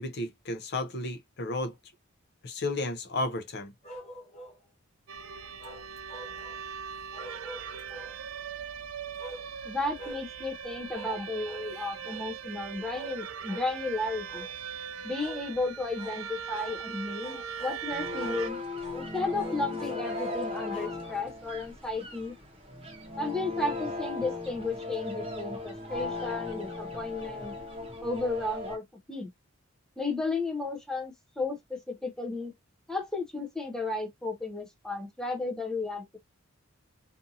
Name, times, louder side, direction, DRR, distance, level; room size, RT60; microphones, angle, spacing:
voice 1, 0.0-1.7 2.4-3.7, left 2 dB, 50° left, 0.5 m, -33 dB
sound 1, 3.8-4.6 5.6-6.6 7.1-8.2 9.2-9.5 10.0-10.2 10.9-11.2 11.4-11.7 12.0-12.3 12.9-13.2 13.5-13.7 14.3-14.5 15.2-15.4 16.0-16.2 16.5-16.8 17.2-17.8 18.2-18.4 18.8-19.1 19.4-21.5, equal, 30° left, 1.2 m, -45 dB
sound 2, 5.1-18.5, right 7 dB, 75° right, 0.5 m, -40 dB
voice 2, 9.7-14.5 15.0-18.6 18.9-22.3 23.2-27.5 28.0-29.3 30.0-32.5 32.9-36.2, left 2 dB, 5° left, 0.5 m, -33 dB
sound 3, 17.9-28.8, left 3 dB, 25° right, 0.8 m, -37 dB
2.6 x 2.5 x 2.6 m
head